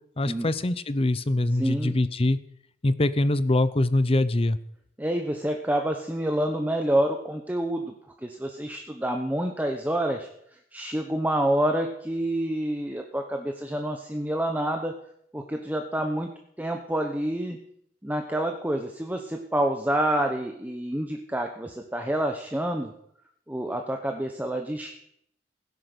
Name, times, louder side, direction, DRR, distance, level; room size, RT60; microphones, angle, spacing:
voice 1, 0.2-2.4 2.8-4.6, left 2 dB, 35° left, 14 dB, 0.7 m, -23 dB
voice 2, 1.6-2.0 5.0-7.9 8.2-10.3 10.7-14.9 15.3-16.3 16.6-17.6 18.0-22.9 23.5-25.0, right 1 dB, 10° right, 4 dB, 1.1 m, -28 dB
17.0 x 10.5 x 6.2 m, 0.72 s
head